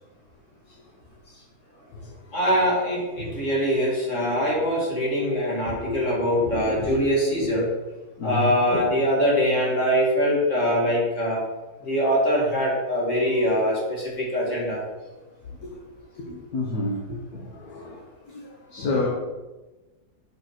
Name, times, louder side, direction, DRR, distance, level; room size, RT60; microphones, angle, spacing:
voice 1, 2.3-7.7 8.2-11.4 11.8-14.8, equal, 50° left, -4 dB, 3.1 m, -23 dB
voice 2, 8.2-8.9 13.3-13.6 14.5-14.6 15.6-15.7 16.2-17.0 17.3-18.0 18.3-19.1, left 2 dB, 70° left, -1 dB, 1.7 m, -30 dB
7.4 x 5.6 x 5.9 m, 1.1 s
omnidirectional pair, 1.7 m